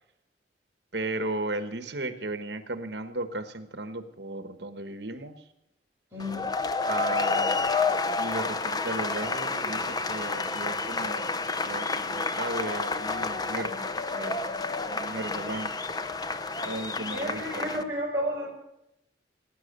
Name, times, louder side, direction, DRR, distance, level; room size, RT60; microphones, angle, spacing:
voice 1, 0.9-5.4 6.8-7.6 8.2-11.4 11.6-14.4 14.8-15.7 16.6-17.9, right 2 dB, 65° right, 9 dB, 1.2 m, -35 dB
voice 2, 6.1-6.5 17.1-18.5, equal, 15° right, -4 dB, 4.9 m, -32 dB
sound 1, 6.2-17.8, left 4 dB, 20° left, 0.6 m, -30 dB
18.5 x 9.6 x 6.7 m, 0.87 s
head